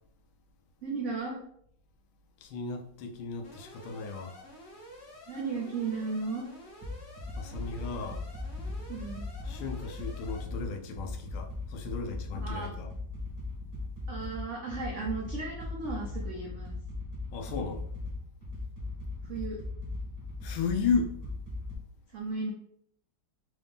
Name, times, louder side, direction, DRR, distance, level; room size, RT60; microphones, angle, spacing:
voice 1, 0.8-1.4 5.3-6.5 8.9-9.2 12.4-12.7 14.1-16.7 19.2-19.6 22.1-22.5, right 4 dB, 90° right, 0.6 m, -35 dB
voice 2, 2.4-4.4 7.4-8.2 9.4-12.9 17.3-17.9 20.4-21.1, left 5 dB, 90° left, 1.5 m, -34 dB
Alarm, 3.4-10.4, equal, 60° left, 0.7 m, -50 dB
sound 1, 6.8-21.7, left 2 dB, 40° right, 0.8 m, -38 dB
3.8 x 2.6 x 3.5 m
omnidirectional pair, 2.2 m